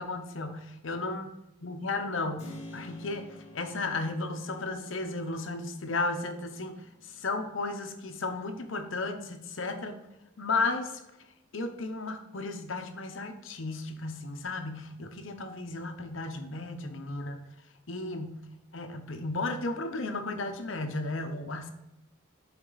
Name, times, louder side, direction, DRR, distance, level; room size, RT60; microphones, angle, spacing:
voice 1, 0.0-1.3 1.6-3.3 3.5-6.7 7.0-10.0 10.4-11.0 11.5-17.4 17.9-18.5 18.7-21.7, left 3 dB, 80° left, 6 dB, 0.9 m, -34 dB
Keyboard (musical), 2.4-10.9, left 1 dB, 30° left, 2.0 m, -52 dB
8.0 x 5.1 x 4.0 m, 0.92 s
head